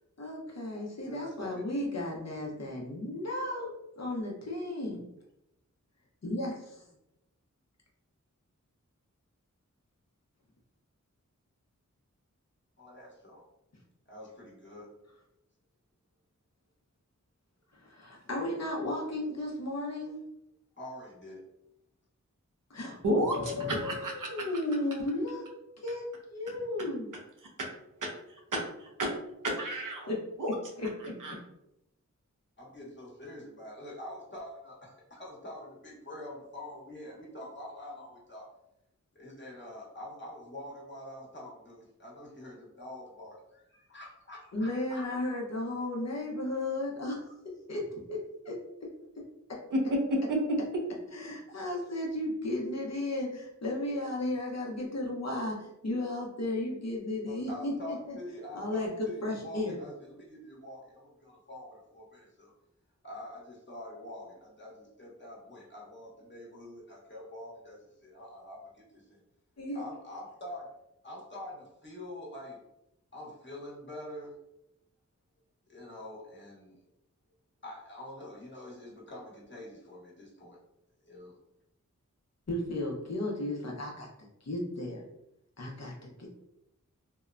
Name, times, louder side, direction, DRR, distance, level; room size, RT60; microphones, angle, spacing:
voice 1, 0.2-5.0 6.2-6.8 17.8-20.2 22.7-25.5 25.8-26.0 26.3-27.1 30.1-30.2 30.8-31.1 44.5-47.3 47.7-47.8 48.1-48.2 48.4-48.5 51.1-58.2 58.5-58.9 59.2-59.8 69.6-69.8 82.5-84.1 84.4-85.0 85.6-86.3, left 1 dB, 55° left, -2 dB, 0.7 m, -34 dB
voice 2, 0.7-1.8 12.8-13.4 14.1-14.9 20.8-21.4 32.6-38.5 39.1-45.0 57.3-62.5 63.0-69.2 69.7-70.7 71.0-72.6 73.1-74.4 75.7-76.8 77.6-80.6 81.0-81.3, left 1 dB, 35° left, -5 dB, 1.0 m, -45 dB
voice 3, 23.0-23.4 23.7-24.5 27.6-27.7 28.0-28.1 28.5-28.6 29.0-29.1 29.4-30.1 30.4-30.5 31.2-31.3 49.7-50.6, right 1 dB, 85° right, 1 dB, 0.6 m, -30 dB
2.8 x 2.1 x 2.4 m, 0.84 s
wide cardioid pair, 50°, 31 cm